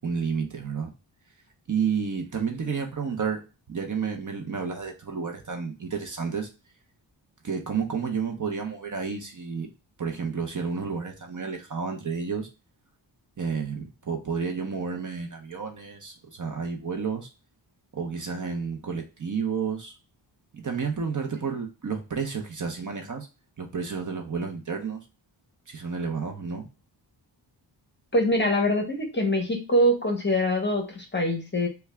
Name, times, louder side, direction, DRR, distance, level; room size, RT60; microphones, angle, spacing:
voice 1, 0.0-0.9 1.7-3.4 3.7-6.5 7.4-9.7 10.0-12.5 13.4-17.3 17.9-19.9 20.5-23.3 23.6-25.0 25.7-26.7, right 6 dB, 45° right, 3 dB, 0.7 m, -31 dB
voice 2, 28.1-31.7, equal, 25° left, 3 dB, 0.8 m, -24 dB
3.3 x 2.3 x 3.3 m, 0.30 s
wide cardioid pair, 120°, 45 cm